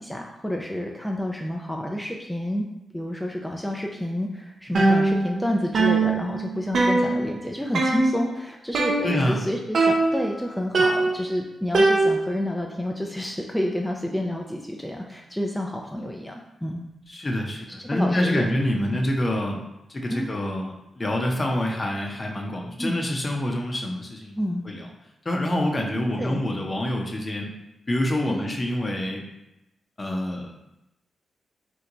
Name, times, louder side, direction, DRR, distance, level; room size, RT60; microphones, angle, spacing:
voice 1, 0.0-2.7 2.9-16.9 17.8-18.5 18.8-18.9 20.1-20.3 22.8-23.0 24.4-24.6 25.8-25.9 26.2-26.4 28.3-28.6, left 1 dB, 5° left, 0 dB, 0.4 m, -29 dB
sound 1, 4.7-5.5 5.7-7.4 7.7-8.3 8.7-9.4 9.7-10.4 10.7-12.4, right 3 dB, 65° right, 0.5 m, -22 dB
voice 2, 9.0-9.4 17.1-19.6 19.9-24.9 25.2-27.5 27.9-29.2 30.0-30.5, left 1 dB, 40° left, 1 dB, 0.7 m, -26 dB
3.1 x 2.1 x 3.8 m, 0.89 s
supercardioid pair, 40°, 0 cm